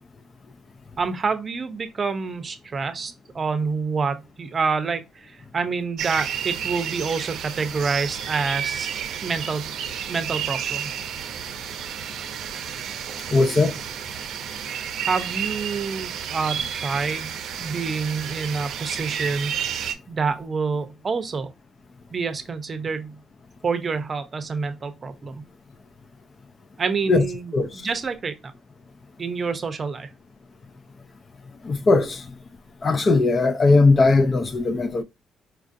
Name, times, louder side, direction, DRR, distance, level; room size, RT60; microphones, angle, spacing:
voice 1, 1.0-8.9 9.2-9.7 10.1-10.9 15.1-19.6 19.8-21.5 22.1-23.2 23.6-25.4 26.8-28.3 29.2-30.1, right 4 dB, 40° right, 0.6 m, -27 dB
sound 1, 6.0-19.9, right 8 dB, 80° right, 0.5 m, -31 dB
voice 2, 13.3-13.8 27.1-27.2 27.5-27.7 31.6-32.3 32.8-35.0, left 3 dB, 40° left, 0.4 m, -18 dB
4.6 x 2.4 x 2.5 m
cardioid pair, 90°, 0 cm